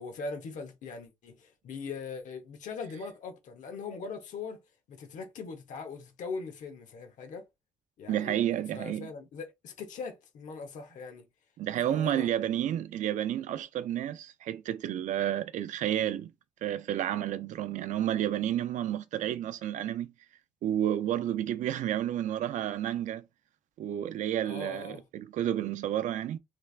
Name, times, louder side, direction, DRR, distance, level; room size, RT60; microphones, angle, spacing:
voice 1, 0.0-4.6 4.9-7.5 8.0-11.3 11.8-12.7 24.4-25.0, left 4 dB, 80° left, 1.1 m, -41 dB
voice 2, 8.1-9.1 11.6-16.3 16.6-20.1 20.6-23.2 23.8-26.4, right 11 dB, 75° right, 0.5 m, -31 dB
3.3 x 3.2 x 2.5 m
wide cardioid pair, 175°, 13 cm